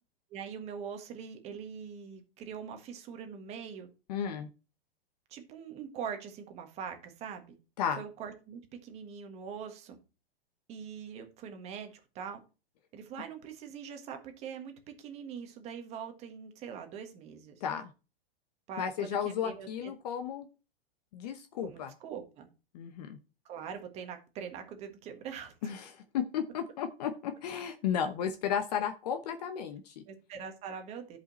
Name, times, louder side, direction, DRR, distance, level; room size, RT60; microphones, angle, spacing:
voice 1, 0.3-3.9 5.3-7.6 8.0-10.0 10.7-12.4 12.9-14.7 15.0-17.6 18.7-19.9 21.6-22.5 23.4-25.7 30.1-31.2, right 7 dB, 20° right, 6 dB, 1.6 m, -43 dB
voice 2, 4.1-4.5 7.8-8.0 17.6-17.9 18.8-20.5 21.1-21.9 22.7-23.2 25.6-30.0, left 8 dB, 40° left, 9 dB, 1.0 m, -34 dB
11.0 x 5.4 x 4.2 m, 0.31 s
supercardioid pair, 165°, 30 cm